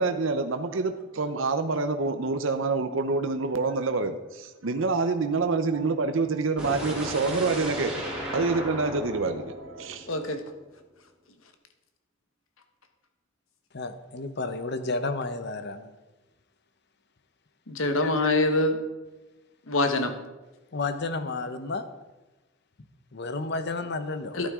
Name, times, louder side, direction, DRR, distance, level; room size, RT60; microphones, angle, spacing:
voice 1, 0.0-8.0 8.3-10.1, right 3 dB, 75° right, 7 dB, 0.7 m, -27 dB
sound 1, 6.6-10.6, equal, 5° right, 3.0 m, -35 dB
voice 2, 10.1-10.4 17.7-18.8 19.7-20.1 24.3-24.5, left 2 dB, 85° left, 7 dB, 1.3 m, -24 dB
voice 3, 13.7-15.9 18.0-18.1 20.7-21.8 23.1-24.4, left 3 dB, 55° left, 10 dB, 0.8 m, -31 dB
13.0 x 11.5 x 3.7 m, 1.1 s
head